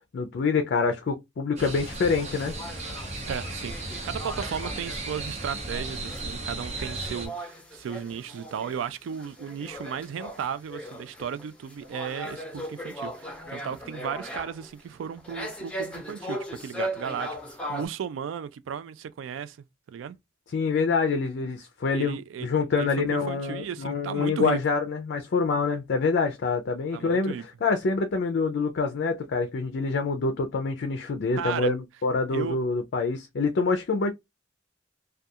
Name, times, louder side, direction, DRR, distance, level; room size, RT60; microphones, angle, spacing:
voice 1, 0.1-2.5 20.5-27.3 27.6-34.1, left 4 dB, 60° left, 0.4 m, -26 dB
sound 1, 1.6-17.9, equal, 5° left, 0.9 m, -39 dB
sound 2, 1.6-7.3, right 2 dB, 35° right, 0.7 m, -35 dB
voice 2, 3.3-19.6 19.9-20.2 21.9-22.5 22.8-24.6 26.9-27.4 31.4-31.7 32.3-32.6, right 7 dB, 75° right, 0.3 m, -35 dB
2.3 x 2.3 x 2.7 m
head